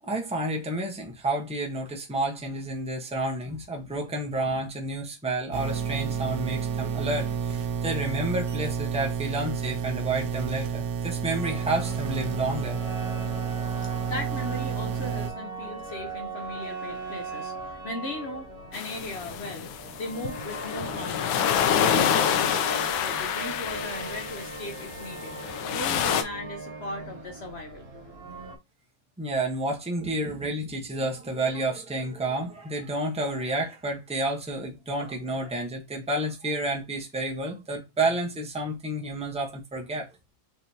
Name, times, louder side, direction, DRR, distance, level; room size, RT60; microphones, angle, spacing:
voice 1, 0.1-12.8 29.2-40.1, right 2 dB, 10° right, 0.4 m, -30 dB
sound 1, 5.5-15.3, right 7 dB, 65° right, 1.4 m, -30 dB
sound 2, 11.0-28.6, right 3 dB, 35° right, 1.3 m, -39 dB
voice 2, 14.1-25.3 25.7-27.9, left 1 dB, 55° left, 0.7 m, -38 dB
sound 3, 18.7-26.2, left 8 dB, 85° left, 1.4 m, -27 dB
5.0 x 3.3 x 2.8 m
omnidirectional pair, 2.1 m